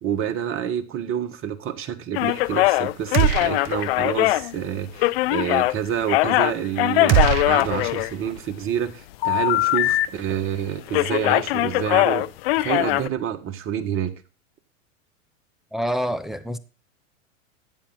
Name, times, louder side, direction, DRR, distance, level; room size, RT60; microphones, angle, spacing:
voice 1, 0.0-7.2 7.5-12.3 12.5-14.1, right 9 dB, 30° right, 1.4 m, -28 dB
sound 1, 2.1-5.7 6.0-8.5 9.2-10.6 10.9-13.1, left 18 dB, 50° left, 0.6 m, -21 dB
sound 2, 3.1-4.0 4.3-4.4 7.1-8.4, right 13 dB, 50° right, 0.9 m, -22 dB
voice 2, 15.7-16.6, equal, ahead, 0.6 m, -26 dB
12.5 x 8.5 x 3.9 m
hypercardioid pair, 105°, 40 cm